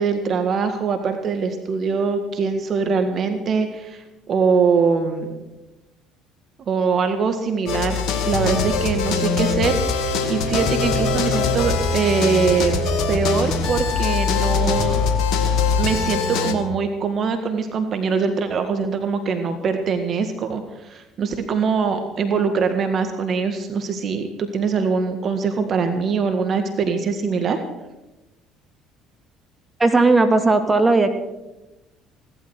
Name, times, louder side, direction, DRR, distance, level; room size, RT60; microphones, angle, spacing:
voice 1, 0.0-5.4 6.7-8.0 8.3-12.8 13.1-15.0 15.8-27.6, right 5 dB, 50° right, 7 dB, 1.8 m, -22 dB
sound 1, 7.7-16.5, left 5 dB, 65° left, 2.1 m, -22 dB
voice 2, 29.8-31.1, right 3 dB, 20° right, 6 dB, 2.4 m, -16 dB
17.0 x 12.5 x 6.4 m, 1.0 s
hypercardioid pair, 65°, 0 cm